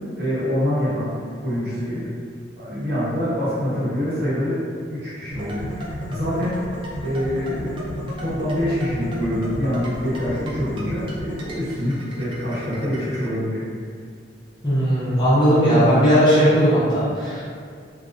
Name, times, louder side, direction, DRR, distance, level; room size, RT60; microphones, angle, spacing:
voice 1, 0.2-2.1 2.6-4.6 4.9-6.6 7.0-13.7, equal, 55° right, -10 dB, 0.9 m, -25 dB
sound 1, 5.3-13.3, equal, 25° right, 0.3 m, -33 dB
voice 2, 14.6-17.4, equal, 25° left, -10 dB, 0.6 m, -17 dB
2.5 x 2.0 x 2.5 m, 2.1 s
head